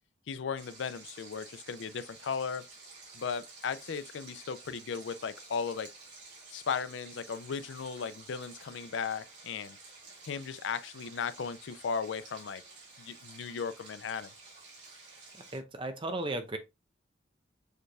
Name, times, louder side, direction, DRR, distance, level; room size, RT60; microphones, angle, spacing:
voice 1, 0.3-2.6 3.1-5.9 6.5-9.8 10.3-12.6 13.0-14.3, left 6 dB, 80° left, 0.4 m, -36 dB
Stream, 0.6-15.6, right 3 dB, 65° right, 2.7 m, -52 dB
voice 2, 15.5-16.6, right 2 dB, 25° right, 0.6 m, -35 dB
6.5 x 3.3 x 2.3 m
head